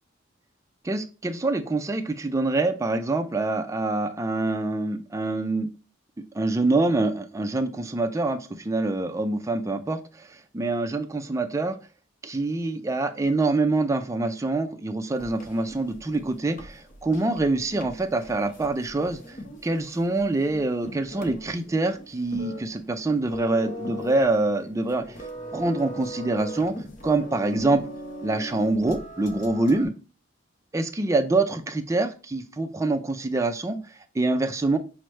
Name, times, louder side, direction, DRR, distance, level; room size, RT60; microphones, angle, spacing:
voice 1, 0.8-5.7 6.3-11.8 12.2-19.4 19.6-26.7 27.0-27.8 28.2-29.9 30.7-34.8, right 2 dB, 15° right, 7 dB, 0.3 m, -25 dB
sound 1, 15.1-29.8, equal, 40° left, 0.7 m, -40 dB
5.9 x 2.1 x 3.1 m, 0.34 s
head